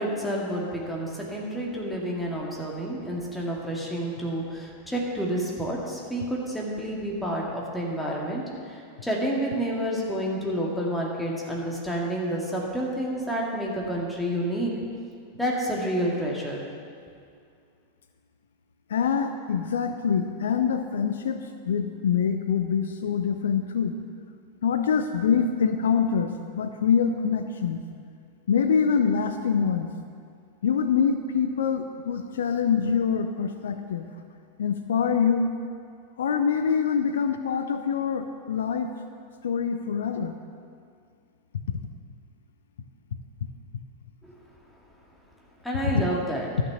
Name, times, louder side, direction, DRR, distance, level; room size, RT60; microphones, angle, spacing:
voice 1, 0.0-14.7 15.4-16.6 44.3-44.4 45.6-46.5, right 1 dB, 5° left, -4 dB, 2.2 m, -29 dB
voice 2, 18.9-23.9 24.6-27.8 28.5-29.9 30.6-34.1 34.6-35.5 36.2-38.9 39.4-40.4 41.7-41.8, left 6 dB, 65° left, 8 dB, 0.5 m, -25 dB
12.5 x 6.0 x 6.9 m, 2.3 s
figure-of-eight pair, 90°, 0 cm